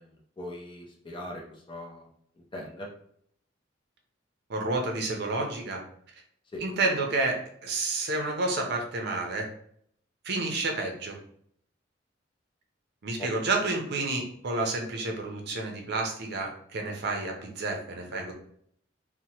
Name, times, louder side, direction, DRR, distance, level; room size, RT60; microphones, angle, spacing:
voice 1, 0.0-2.1 2.5-2.9 6.5-6.7 13.2-13.3, left 1 dB, 25° left, -1 dB, 0.6 m, -40 dB
voice 2, 4.5-5.8 6.6-9.5 10.2-11.2 13.0-18.3, right 2 dB, 60° right, 2 dB, 0.6 m, -30 dB
2.8 x 2.1 x 2.8 m, 0.65 s
head